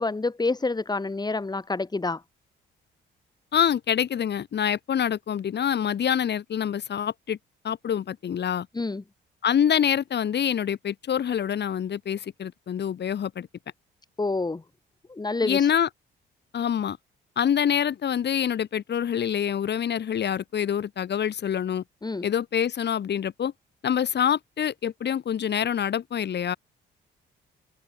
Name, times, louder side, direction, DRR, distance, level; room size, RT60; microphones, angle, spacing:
voice 1, 0.0-2.2 8.7-9.0 14.2-14.6 15.1-15.7 22.0-22.3, left 3 dB, 20° left, 4.1 m, -28 dB
voice 2, 3.5-7.4 7.6-8.7 9.4-13.5 15.4-15.9 16.5-17.0 17.4-21.8 22.2-23.5 23.8-26.6, left 9 dB, 60° left, 7.2 m, -26 dB
open air
cardioid pair, 90°, 20 cm